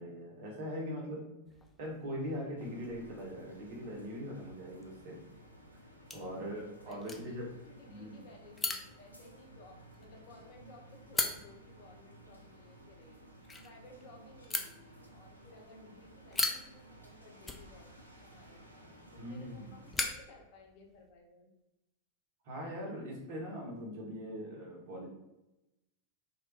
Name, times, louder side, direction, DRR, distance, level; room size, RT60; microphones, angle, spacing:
voice 1, 0.0-1.3 1.8-5.2 6.1-7.5 7.9-8.2 19.2-19.7 22.4-25.1, equal, 50° right, -1 dB, 0.9 m, -41 dB
sound 1, 1.5-21.1, left 3 dB, 15° left, 0.4 m, -43 dB
sound 2, 2.6-19.9, right 1 dB, 90° right, 0.4 m, -56 dB
voice 2, 6.2-7.4 7.6-13.2 13.6-17.9 18.2-18.6 19.1-21.5, left 2 dB, 45° left, 1 dB, 0.7 m, -57 dB
3.0 x 2.3 x 3.2 m, 0.94 s
figure-of-eight pair, 90°, 0 cm